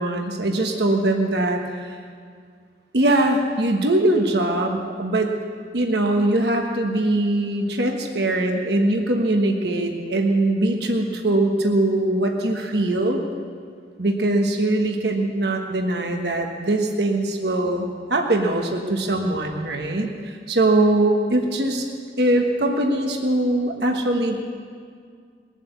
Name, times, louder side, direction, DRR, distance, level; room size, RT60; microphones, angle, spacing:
voice 1, 0.0-1.9 2.9-5.3 5.7-13.2 14.0-21.9 22.2-24.4, right 1 dB, 65° right, 2 dB, 1.3 m, -21 dB
20.5 x 8.0 x 8.1 m, 2.1 s
head